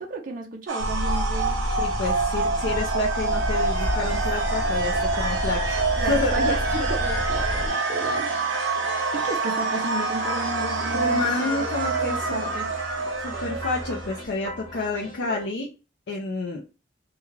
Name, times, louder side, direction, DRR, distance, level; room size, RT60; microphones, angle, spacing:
voice 1, 0.0-1.6 6.0-8.3 8.5-8.8 9.1-12.7, right 3 dB, 45° right, 0.5 m, -33 dB
sound 1, 0.7-14.2, right 3 dB, 80° right, 0.7 m, -27 dB
sound 2, 0.8-7.7, equal, 15° right, 0.8 m, -29 dB
voice 2, 1.8-6.6 10.9-12.4 13.2-15.7 16.1-16.6, left 3 dB, 65° left, 0.5 m, -29 dB
sound 3, 4.0-15.5, equal, 25° left, 1.0 m, -38 dB
2.3 x 2.3 x 3.1 m
head